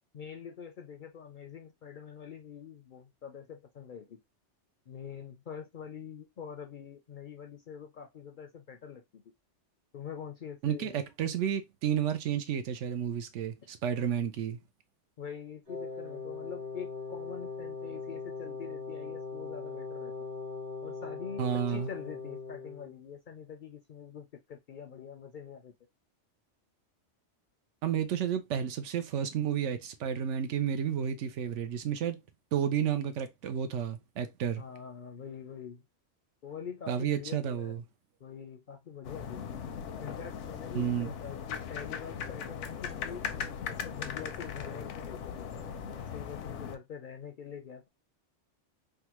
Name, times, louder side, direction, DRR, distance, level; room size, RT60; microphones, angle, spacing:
voice 1, 0.1-4.2 4.9-9.2 9.9-11.0 15.2-20.2 20.8-25.7 34.6-35.8 36.4-37.8 38.2-39.5 40.0-45.5 45.9-47.9, left 7 dB, 55° left, 0.6 m, -45 dB
voice 2, 10.6-14.6 21.4-21.9 27.8-32.2 32.5-34.6 36.9-37.8 40.7-41.1, right 8 dB, 80° right, 0.9 m, -31 dB
Wind instrument woodwind instrument, 15.7-23.0, left 4 dB, 50° right, 1.8 m, -40 dB
sound 1, 39.0-46.8, left 7 dB, 80° left, 0.9 m, -39 dB
3.6 x 2.2 x 2.9 m
omnidirectional pair, 1.2 m